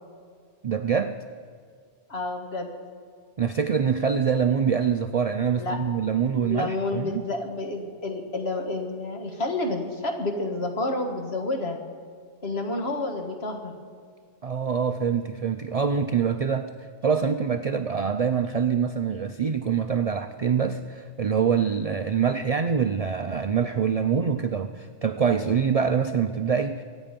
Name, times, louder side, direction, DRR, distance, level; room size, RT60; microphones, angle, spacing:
voice 1, 0.6-1.2 3.4-7.2 14.4-16.7 17.0-26.8, right 6 dB, 50° right, 8 dB, 0.4 m, -25 dB
voice 2, 2.1-2.7 5.6-5.8 6.4-11.8 12.4-13.7, left 2 dB, 55° left, 3 dB, 1.9 m, -29 dB
24.0 x 9.1 x 5.2 m, 2.1 s
omnidirectional pair, 1.3 m